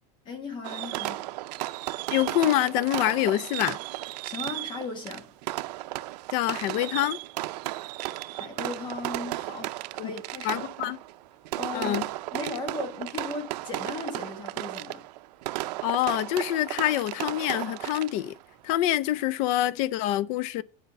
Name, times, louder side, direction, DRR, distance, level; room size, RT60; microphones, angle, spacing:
voice 1, 0.2-1.3 4.2-5.3 8.3-10.7 11.5-12.0 12.3-15.0, left 3 dB, 25° left, 1.5 m, -37 dB
Fireworks, 0.6-18.4, right 18 dB, 90° right, 0.6 m, -34 dB
voice 2, 2.1-3.8 6.3-7.2 10.0-10.1 10.4-11.0 11.7-12.1 15.8-18.4 18.6-20.6, left 14 dB, 40° left, 0.4 m, -26 dB
10.5 x 5.0 x 6.9 m
supercardioid pair, 180°, 20 cm